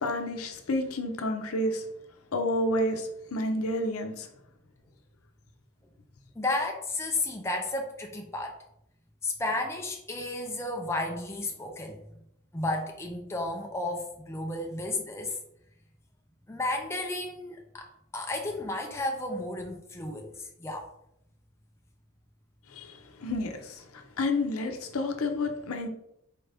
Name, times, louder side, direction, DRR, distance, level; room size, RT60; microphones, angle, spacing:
voice 1, 0.0-1.8 2.3-3.0 3.3-4.3 22.8-22.9 23.2-23.5 24.2-25.9, left 1 dB, 85° left, 5 dB, 0.6 m, -29 dB
voice 2, 6.4-8.6 9.2-12.0 12.5-15.4 16.5-17.9 18.1-20.9, left 2 dB, 10° left, 1 dB, 0.4 m, -32 dB
4.4 x 2.6 x 3.3 m, 0.77 s
head